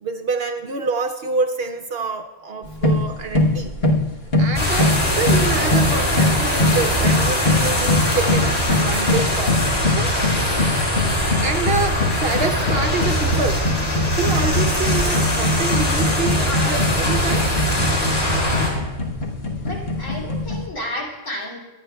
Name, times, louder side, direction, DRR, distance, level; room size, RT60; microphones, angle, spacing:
voice 1, 0.0-3.7 4.4-10.1 11.4-13.7 14.2-17.5, right 4 dB, 60° right, 6 dB, 0.7 m, -26 dB
sound 1, 2.6-20.7, left 2 dB, 50° left, 1.4 m, -23 dB
sound 2, 4.5-18.7, left 1 dB, 30° left, 4.4 m, -22 dB
voice 2, 18.3-18.7 19.6-21.6, equal, 65° left, -4 dB, 3.2 m, -31 dB
25.0 x 9.9 x 2.2 m, 1.2 s
omnidirectional pair, 1.4 m